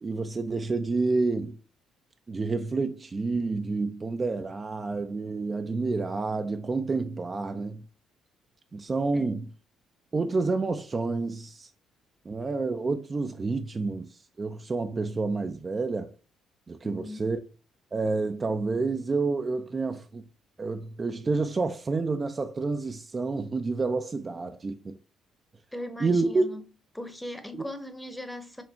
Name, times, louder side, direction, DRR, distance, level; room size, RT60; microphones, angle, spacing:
voice 1, 0.0-1.6 2.3-7.9 8.7-9.5 10.1-11.7 12.3-16.1 16.7-17.4 17.9-20.3 20.6-25.0 26.0-26.4 27.5-27.7, right 3 dB, 35° right, 0.4 m, -29 dB
voice 2, 16.8-17.3 25.7-26.6 26.9-28.6, left 1 dB, 5° left, 0.8 m, -39 dB
4.4 x 3.2 x 2.8 m
hypercardioid pair, 45°, 0 cm